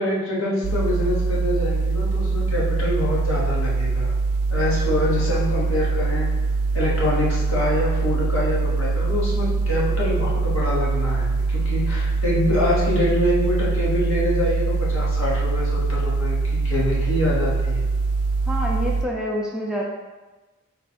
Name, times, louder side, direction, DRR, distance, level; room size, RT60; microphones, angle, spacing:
voice 1, 0.0-4.1 4.5-6.3 6.7-17.8, left 1 dB, 80° left, -6 dB, 1.2 m, -25 dB
sound 1, 0.6-19.1, right 4 dB, 90° right, 0.3 m, -23 dB
voice 2, 18.5-19.8, equal, 5° right, -3 dB, 0.4 m, -27 dB
4.2 x 2.3 x 4.2 m, 1.2 s
head